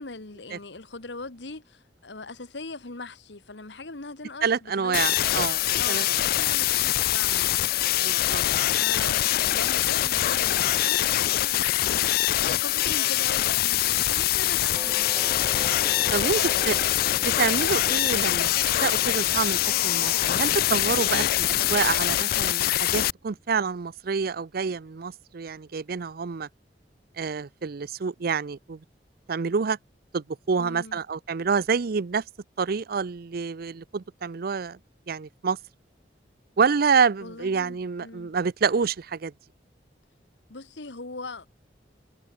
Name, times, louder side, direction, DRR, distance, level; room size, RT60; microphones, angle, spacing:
voice 1, 0.0-5.3 5.8-8.0 8.8-15.8 16.2-16.9 30.6-31.0 37.2-38.4 40.5-41.5, left 3 dB, 80° left, 1.9 m, -40 dB
voice 2, 4.4-5.6 5.9-6.0 6.4-6.5 8.0-8.4 9.0-9.1 16.1-16.4 16.7-16.8 17.2-18.5 18.8-26.5 27.2-28.8 29.3-29.8 30.1-32.2 32.6-34.8 35.1-35.6 36.6-39.3, right 5 dB, 60° right, 0.5 m, -27 dB
sound 1, 4.9-23.1, left 14 dB, 55° left, 0.3 m, -24 dB
Doorbell, 14.8-23.6, right 1 dB, 10° right, 3.0 m, -44 dB
head